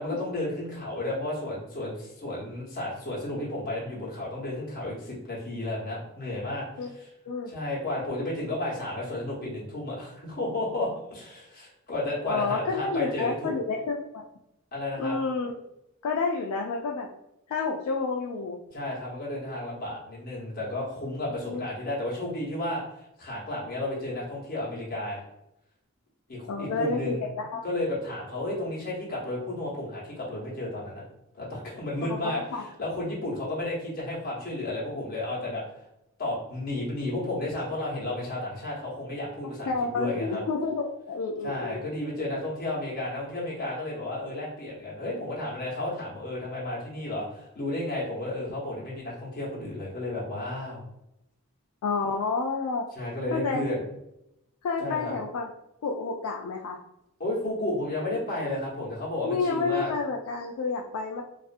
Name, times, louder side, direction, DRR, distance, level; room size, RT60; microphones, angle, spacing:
voice 1, 0.0-6.7 6.9-7.1 7.5-13.5 14.7-15.2 18.7-22.8 23.2-25.2 26.3-27.2 27.6-31.0 31.3-35.6 36.2-40.4 41.4-50.8 53.0-53.8 54.8-55.1 57.2-59.9, left 1 dB, 40° left, -6 dB, 0.9 m, -32 dB
voice 2, 12.3-14.2 15.0-15.5 16.0-17.1 17.5-18.6 21.5-21.7 26.5-27.6 32.1-32.6 39.7-41.8 51.8-52.9 53.3-53.6 54.6-55.5 55.8-56.8 59.2-61.2, left 4 dB, 80° left, 0 dB, 0.3 m, -29 dB
2.4 x 2.3 x 2.5 m, 0.84 s
head